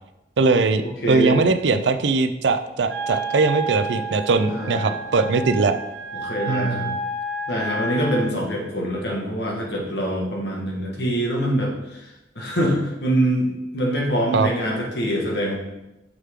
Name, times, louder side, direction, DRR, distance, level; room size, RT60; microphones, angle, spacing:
voice 1, 0.4-5.8 6.5-7.0 14.3-14.5, right 3 dB, 85° right, 9 dB, 0.5 m, -20 dB
voice 2, 1.0-1.5 4.5-4.9 6.2-6.9 7.5-15.6, right 1 dB, 70° left, -1 dB, 1.7 m, -24 dB
Wind instrument woodwind instrument, 2.9-8.3, right 2 dB, 65° right, 1.5 m, -30 dB
6.7 x 6.1 x 3.7 m, 0.95 s
head